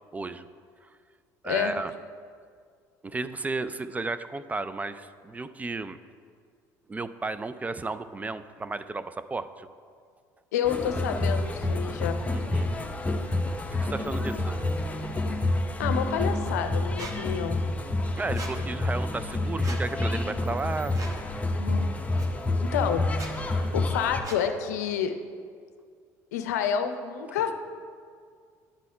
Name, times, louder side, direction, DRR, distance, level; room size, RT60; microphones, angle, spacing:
voice 1, 0.1-0.5 1.4-1.9 3.0-6.0 6.9-9.7 12.3-12.7 13.7-14.5 18.2-21.0, right 3 dB, 15° right, 13 dB, 0.3 m, -33 dB
voice 2, 10.5-12.2 15.8-17.6 21.4-21.9 22.7-23.1 23.7-25.1 26.3-27.5, left 8 dB, 90° left, 7 dB, 0.5 m, -29 dB
sound 1, 10.6-24.2, left 2 dB, 15° left, 0.8 m, -28 dB
Squeak, 17.0-17.1 18.3-18.5 19.6-19.8 20.9-21.2 22.2-22.3 23.1-23.3 24.2-24.4, right 3 dB, 40° right, 1.2 m, -39 dB
10.0 x 4.1 x 5.6 m, 2.1 s
hypercardioid pair, 75°, 9 cm